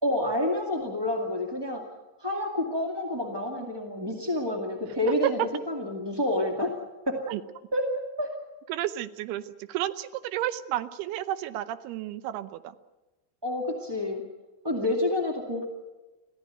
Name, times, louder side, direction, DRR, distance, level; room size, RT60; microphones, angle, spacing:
voice 1, 0.0-1.8 2.2-6.7 7.0-7.2 7.7-8.3 13.4-14.2 14.6-15.7, left 1 dB, 10° right, 1 dB, 1.2 m, -28 dB
voice 2, 8.7-12.7 14.8-14.9, right 13 dB, 85° right, 13 dB, 2.9 m, -32 dB
25.0 x 15.5 x 9.2 m, 1.1 s
omnidirectional pair, 4.5 m